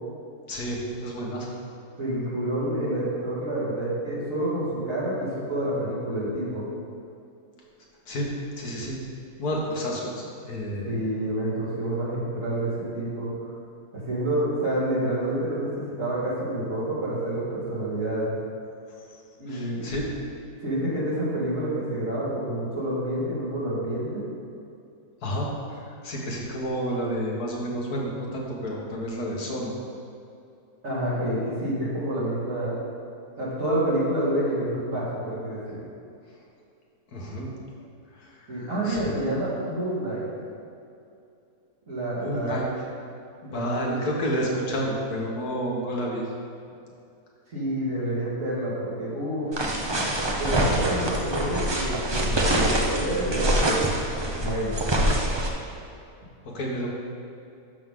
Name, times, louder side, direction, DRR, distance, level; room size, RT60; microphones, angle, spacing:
voice 1, 0.5-1.6 8.1-8.3 8.6-9.0 9.4-10.1 10.4-10.9 19.1-19.2 19.5-20.0 25.2-29.8 37.1-37.5 38.2-39.1 42.2-42.6 43.4-46.2 56.5-56.9, equal, 90° left, -3 dB, 2.0 m, -30 dB
voice 2, 2.0-6.6 10.9-13.5 13.9-18.3 19.4-19.9 20.6-24.2 30.8-32.8 33.4-35.8 38.5-40.3 41.9-42.6 43.5-44.0 47.5-49.5 50.3-53.8 54.4-54.8, right 1 dB, 60° right, -8 dB, 3.0 m, -28 dB
sound 1, 49.5-55.5, right 1 dB, 25° right, 0.7 m, -25 dB
12.0 x 6.3 x 3.8 m, 2.6 s
omnidirectional pair, 1.6 m